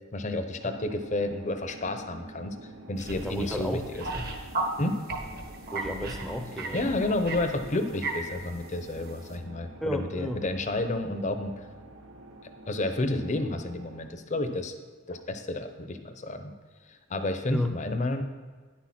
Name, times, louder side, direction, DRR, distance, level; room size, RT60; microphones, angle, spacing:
voice 1, 0.1-2.6 2.9-4.0 4.8-5.0 6.7-11.5 12.7-14.7 15.1-16.5 16.9-18.2, left 2 dB, 35° left, 8 dB, 0.7 m, -30 dB
sound 1, 0.6-14.1, right 2 dB, 80° right, 1.0 m, -48 dB
sound 2, 3.0-4.7 5.1-8.4 8.8-9.1, right 3 dB, 45° right, 1.1 m, -35 dB
voice 2, 3.2-3.8 5.7-7.2 9.8-10.4 17.5-17.7, equal, ahead, 5 dB, 0.6 m, -32 dB
9.9 x 6.2 x 5.9 m, 1.5 s
head